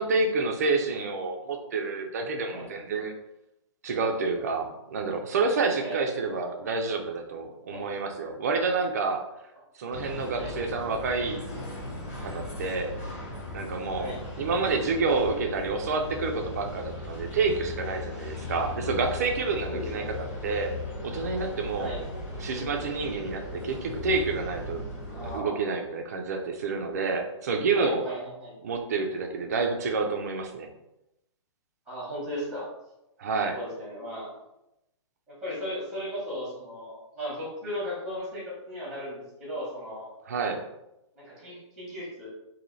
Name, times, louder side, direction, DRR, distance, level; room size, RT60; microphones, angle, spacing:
voice 1, 0.0-3.1 3.8-9.2 9.8-11.4 12.2-12.9 13.5-20.7 21.0-21.9 22.4-24.8 25.2-28.1 28.6-30.7 33.2-33.6 40.3-40.6, right 4 dB, 30° right, 4 dB, 0.4 m, -28 dB
sound 1, 9.9-25.4, left 2 dB, 30° left, 1.0 m, -37 dB
voice 2, 19.6-20.1 21.8-22.0 25.1-25.7 27.7-28.5 31.9-32.7 33.5-34.3 35.3-40.1 41.1-42.3, equal, ahead, -6 dB, 1.0 m, -36 dB
3.1 x 2.7 x 3.9 m, 0.88 s
hypercardioid pair, 175°, 16 cm